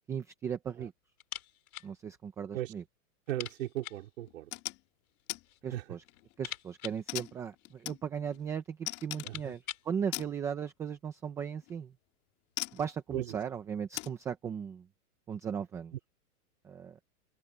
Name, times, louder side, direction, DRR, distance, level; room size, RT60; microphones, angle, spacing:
voice 1, 0.1-0.9 1.8-2.8 5.6-6.0 6.4-11.9 12.7-14.9 15.3-15.9 16.6-17.0, right 7 dB, 5° right, 0.5 m, -37 dB
sound 1, 1.2-2.0 2.2-2.3 2.7-2.8 3.3-4.1 5.1-5.6 6.0-8.0 8.6-8.7 9.0-10.0, left 11 dB, 75° left, 7.2 m, -45 dB
voice 2, 3.3-4.5 5.7-5.8 9.2-9.5 13.1-13.2, right 14 dB, 60° right, 4.0 m, -36 dB
sound 2, 4.3-4.8 5.3-5.4 5.9-6.3 7.1-8.4 8.9-9.4 10.1-10.3 11.6-11.8 12.6-12.9 13.9-14.2, left 23 dB, 35° left, 2.9 m, -39 dB
open air
supercardioid pair, 160°, 44 cm